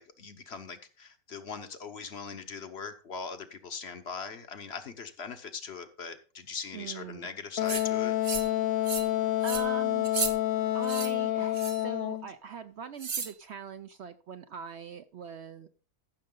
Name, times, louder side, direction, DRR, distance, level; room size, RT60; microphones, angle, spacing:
voice 1, 0.0-8.1, left 5 dB, 50° left, 1.0 m, -41 dB
voice 2, 6.7-7.3 9.0-10.1 10.7-15.7, right 7 dB, 65° right, 0.7 m, -42 dB
Wind instrument woodwind instrument, 7.6-12.3, left 13 dB, 75° left, 1.1 m, -28 dB
sound 1, 7.7-7.8 8.2-8.5 8.9-9.1 9.4-9.6 10.0-10.3 10.8-11.1 11.5-11.9 13.0-13.3, right 6 dB, 45° right, 1.3 m, -34 dB
14.5 x 6.5 x 3.8 m
omnidirectional pair, 1.5 m